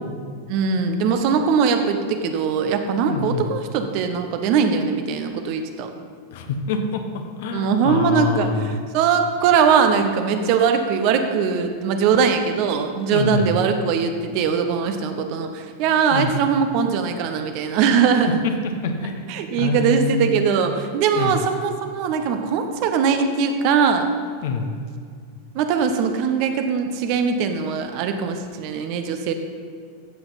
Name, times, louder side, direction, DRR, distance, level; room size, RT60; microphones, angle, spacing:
voice 1, 0.5-5.9 7.5-18.4 19.3-24.1 25.5-29.3, right 6 dB, 45° right, 6 dB, 1.0 m, -21 dB
voice 2, 3.1-3.5 6.3-8.7 13.1-13.5 16.1-16.3 18.4-18.5 18.8-19.3 19.6-20.3 21.2-21.4 24.4-24.7, left 4 dB, 55° left, 5 dB, 1.2 m, -25 dB
14.5 x 7.9 x 4.2 m, 2.2 s
figure-of-eight pair, 90°, 0 cm